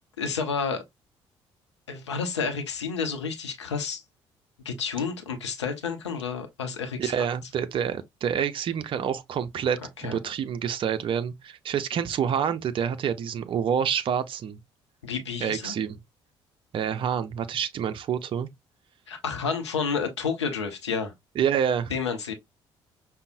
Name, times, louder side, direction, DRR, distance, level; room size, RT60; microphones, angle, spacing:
voice 1, 0.2-0.8 1.9-4.0 4.6-7.3 10.0-10.2 15.0-15.7 19.1-21.1 21.9-22.3, left 5 dB, 80° left, 0.6 m, -30 dB
voice 2, 7.0-14.6 15.4-16.0 16.7-18.5 21.4-21.9, right 8 dB, 35° right, 0.4 m, -27 dB
5.2 x 2.0 x 2.5 m
figure-of-eight pair, 45°, 14 cm